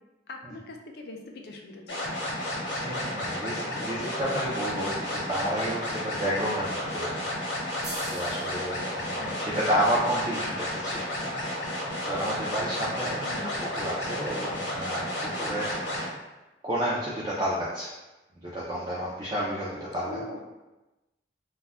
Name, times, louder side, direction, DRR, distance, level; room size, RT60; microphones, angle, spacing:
voice 1, 0.3-2.0 9.2-9.6 13.2-13.6 20.1-20.4, left 2 dB, 60° left, 2 dB, 0.4 m, -41 dB
sound 1, 1.9-16.1, left 1 dB, 85° left, 0.9 m, -32 dB
voice 2, 2.8-7.3 7.6-7.8 8.1-13.4 13.8-15.1 15.4-15.7 16.6-17.9 18.4-20.2, equal, 25° right, -7 dB, 0.4 m, -31 dB
sound 2, 7.8-11.4, right 2 dB, 75° right, 0.7 m, -44 dB
2.3 x 2.1 x 3.3 m, 1.1 s
head